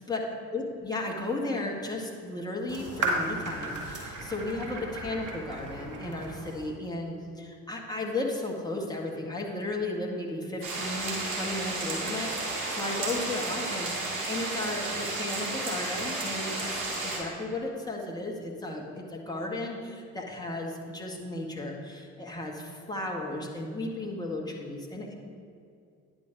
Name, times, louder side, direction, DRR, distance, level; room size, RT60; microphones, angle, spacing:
voice 1, 0.5-25.1, left 2 dB, 10° left, -1 dB, 1.7 m, -34 dB
sound 1, 2.7-6.7, right 2 dB, 45° right, 2.0 m, -35 dB
sound 2, 10.6-17.2, right 2 dB, 65° right, 2.1 m, -32 dB
9.4 x 6.2 x 5.3 m, 2.4 s
figure-of-eight pair, 50°, 43 cm